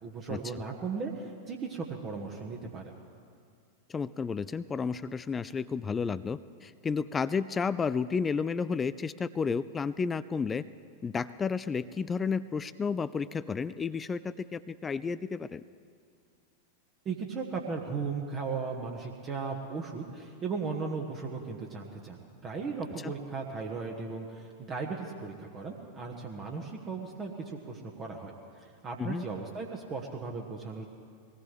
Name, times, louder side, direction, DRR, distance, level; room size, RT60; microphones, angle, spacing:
voice 1, 0.0-2.9 17.0-28.3 28.6-30.9, right 4 dB, 30° right, 0 dB, 1.3 m, -37 dB
voice 2, 3.9-10.6 11.0-15.6 23.0-23.1 29.0-29.2, left 5 dB, 15° left, 16 dB, 0.3 m, -32 dB
23.0 x 18.0 x 3.3 m, 2.2 s
figure-of-eight pair, 90°, 0 cm